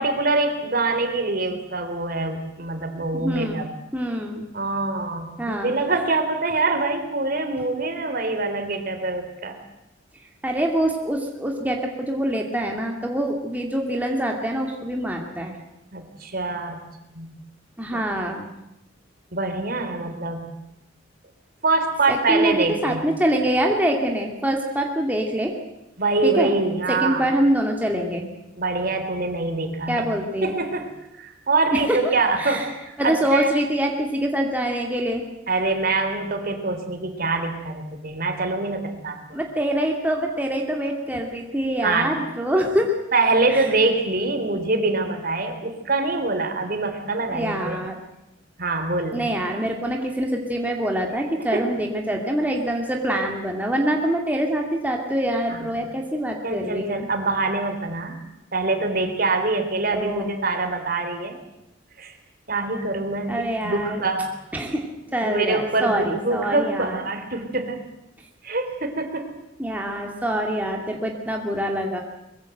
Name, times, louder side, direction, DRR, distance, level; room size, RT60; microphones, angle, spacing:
voice 1, 0.0-3.7 4.5-9.6 15.9-16.8 17.1-17.3 17.9-18.0 19.3-20.5 21.6-23.0 26.0-27.3 28.6-30.0 30.4-33.5 35.5-39.4 41.8-42.2 42.6-42.7 43.1-47.8 48.6-49.3 51.4-51.7 55.5-55.8 56.4-58.2 58.5-61.4 62.0-62.1 62.5-64.3 65.2-67.8 68.4-69.3, right 3 dB, 50° right, 6 dB, 3.6 m, -24 dB
voice 2, 3.1-3.7 3.9-4.5 5.4-5.7 10.4-15.6 17.8-18.5 22.1-25.5 26.2-26.5 26.9-28.3 29.9-30.6 31.7-32.0 32.4-32.6 33.0-35.2 39.3-42.9 43.5-43.7 47.3-48.0 49.1-57.1 59.9-60.3 63.3-64.0 64.5-67.0 69.6-72.0, right 1 dB, 10° right, 1 dB, 2.3 m, -25 dB
23.5 x 22.0 x 7.9 m, 0.87 s
head